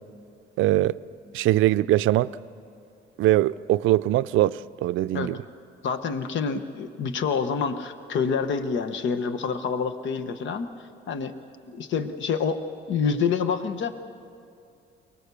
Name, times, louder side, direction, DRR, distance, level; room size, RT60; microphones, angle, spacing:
voice 1, 0.6-0.9 1.3-2.3 3.2-5.4, right 15 dB, 85° right, 15 dB, 0.4 m, -22 dB
voice 2, 5.8-10.7 11.1-11.3 11.7-12.6 12.9-13.9, left 6 dB, 70° left, 10 dB, 1.1 m, -27 dB
23.0 x 19.0 x 6.9 m, 2.5 s
cardioid pair, 90°, 20 cm